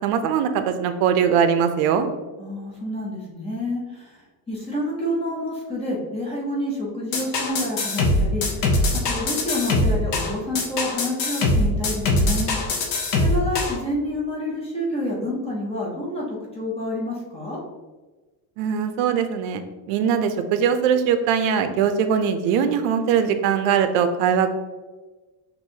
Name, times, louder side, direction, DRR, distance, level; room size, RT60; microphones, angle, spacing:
voice 1, 0.0-2.1 18.6-24.5, right 7 dB, 90° right, 9 dB, 0.6 m, -21 dB
voice 2, 2.4-4.2 4.5-8.7 9.1-12.8 13.1-17.6, left 1 dB, 15° left, -4 dB, 0.4 m, -28 dB
sound 1, 7.1-13.8, left 2 dB, 55° left, 0.8 m, -22 dB
6.1 x 2.6 x 2.7 m, 1.2 s
cardioid pair, 180°, 49 cm